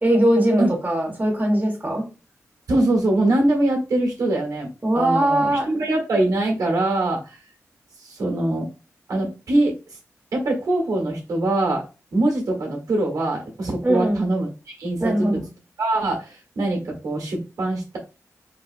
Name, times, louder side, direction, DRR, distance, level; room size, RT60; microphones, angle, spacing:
voice 1, 0.0-2.0 4.8-5.7 13.8-14.2 15.0-15.3, right 1 dB, 30° right, 0 dB, 1.5 m, -20 dB
voice 2, 2.7-7.4 8.0-8.7 9.1-9.8 10.3-11.8 12.1-14.5 14.8-15.4 15.8-18.0, right 2 dB, 85° right, 1 dB, 1.3 m, -23 dB
3.9 x 2.7 x 2.5 m, 0.31 s
wide cardioid pair, 75°, 6 cm